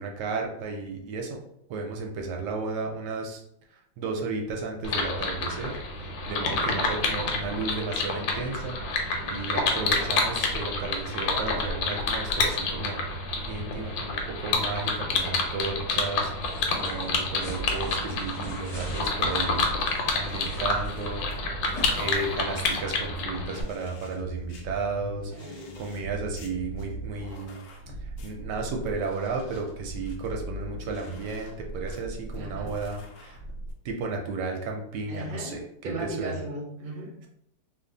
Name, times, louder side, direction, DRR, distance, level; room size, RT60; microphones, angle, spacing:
voice 1, 0.0-1.4 1.7-3.4 4.0-13.0 13.4-19.6 20.1-21.2 22.0-27.6 28.0-33.4 33.8-35.6 36.0-36.4, right 4 dB, 75° right, 2 dB, 1.1 m, -33 dB
sound 1, 4.8-23.6, left 3 dB, 90° left, 1.4 m, -28 dB
sound 2, 16.4-21.4 21.7-21.8, equal, 10° left, 1.1 m, -44 dB
sound 3, 17.5-33.7, right 1 dB, 75° left, 0.7 m, -40 dB
voice 2, 21.7-22.0 25.3-25.8 32.3-32.8 35.1-37.1, right 1 dB, 55° right, -1 dB, 0.6 m, -38 dB
2.8 x 2.5 x 3.8 m, 0.76 s
omnidirectional pair, 2.0 m